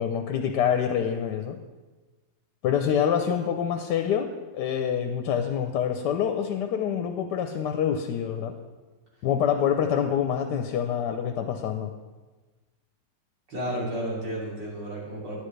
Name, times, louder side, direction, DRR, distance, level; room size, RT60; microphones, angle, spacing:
voice 1, 0.0-1.6 2.6-8.6 9.2-11.9, left 8 dB, 75° left, 6 dB, 1.2 m, -26 dB
voice 2, 13.5-15.4, right 1 dB, 75° right, -6 dB, 3.5 m, -32 dB
10.0 x 10.0 x 3.3 m, 1.2 s
omnidirectional pair, 1.9 m